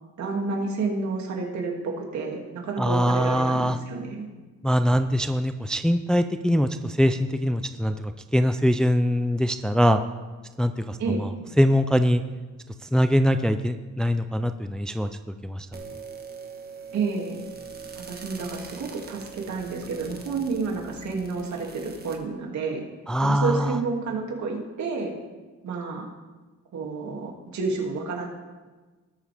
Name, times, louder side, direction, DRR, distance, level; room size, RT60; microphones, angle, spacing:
voice 1, 0.2-4.3 11.0-11.2 16.9-17.4 18.0-22.8 23.2-25.1 25.6-26.1 26.7-28.3, right 4 dB, 70° right, 0 dB, 2.6 m, -30 dB
voice 2, 2.8-3.8 4.6-10.0 10.6-11.3 11.6-12.2 12.9-15.1 15.4-15.8 23.1-23.8, equal, ahead, 9 dB, 0.5 m, -23 dB
sound 1, 15.7-22.2, right 5 dB, 30° right, 1.5 m, -42 dB
19.5 x 7.3 x 3.6 m, 1.3 s
cardioid pair, 90°, 30 cm